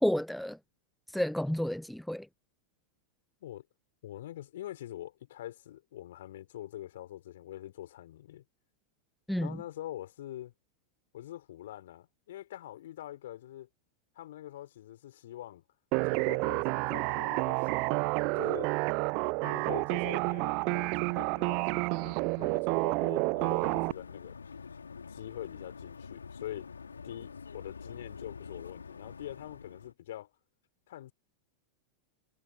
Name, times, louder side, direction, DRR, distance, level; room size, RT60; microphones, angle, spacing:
voice 1, 0.0-0.6 1.1-2.3 9.3-9.6, equal, ahead, 0.8 m, -30 dB
voice 2, 4.0-8.4 9.4-10.5 11.1-13.7 14.2-15.6 16.0-18.0 18.3-18.7 19.4-24.4 25.1-26.7 27.0-30.3 30.9-31.1, left 13 dB, 60° left, 5.4 m, -44 dB
sound 1, 15.9-23.9, right 32 dB, 45° right, 0.3 m, -30 dB
sound 2, 23.4-29.9, left 5 dB, 75° left, 3.8 m, -46 dB
figure-of-eight pair, 90°, 0 cm